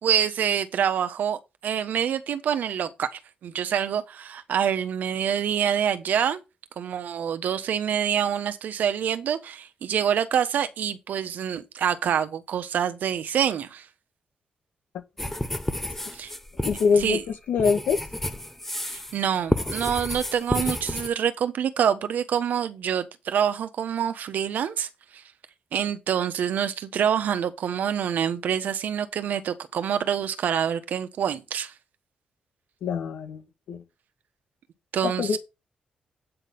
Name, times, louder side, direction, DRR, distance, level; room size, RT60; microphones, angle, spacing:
voice 1, 0.0-6.4 6.8-13.9 16.1-16.3 17.0-17.2 18.8-25.2 25.7-31.7 34.9-35.4, right 8 dB, 75° right, 1.1 m, -26 dB
sound 1, 15.2-19.2 19.5-21.1, left 1 dB, 10° left, 0.9 m, -30 dB
voice 2, 16.6-17.2 17.5-18.0 32.8-33.4 33.7-33.8 35.2-35.4, left 5 dB, 80° left, 1.7 m, -23 dB
8.8 x 4.0 x 6.9 m
cardioid pair, 80°, 3 cm